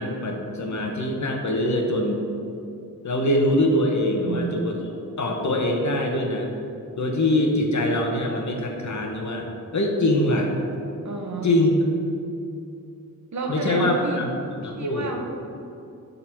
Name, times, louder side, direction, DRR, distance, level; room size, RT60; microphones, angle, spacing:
voice 1, 0.0-2.2 3.0-4.7 5.2-6.5 7.0-9.5 9.7-10.5 11.4-11.8 13.5-14.3 14.6-15.1, left 1 dB, 55° left, 1 dB, 1.2 m, -23 dB
voice 2, 4.1-4.6 11.0-11.5 13.3-14.2 14.6-15.2, right 3 dB, 55° right, 2 dB, 1.1 m, -30 dB
10.5 x 4.0 x 4.5 m, 2.6 s
wide cardioid pair, 95°, 35 cm